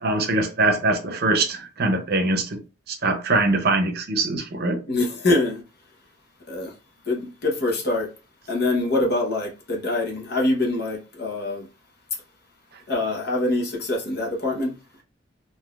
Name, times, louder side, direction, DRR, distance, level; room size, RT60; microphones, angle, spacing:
voice 1, 0.0-2.6 2.9-4.8, right 2 dB, 55° right, 0.6 m, -22 dB
voice 2, 4.9-5.6 6.5-6.7 7.1-8.1 8.5-11.7 12.9-14.7, left 2 dB, 55° left, 1.0 m, -24 dB
3.8 x 2.6 x 2.4 m
head